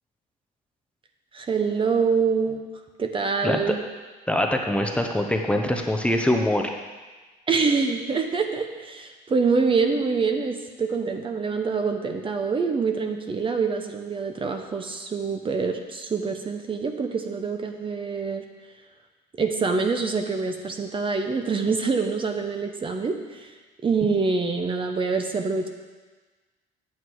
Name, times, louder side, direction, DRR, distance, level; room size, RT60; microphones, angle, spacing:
voice 1, 1.3-2.6 3.0-3.8 7.5-18.5 19.4-23.5 23.8-25.7, right 4 dB, 30° right, 5 dB, 0.9 m, -25 dB
voice 2, 3.4-3.7 4.3-6.7, left 1 dB, 5° left, 3 dB, 0.9 m, -23 dB
9.2 x 8.4 x 4.7 m, 1.3 s
cardioid pair, 110°, 17 cm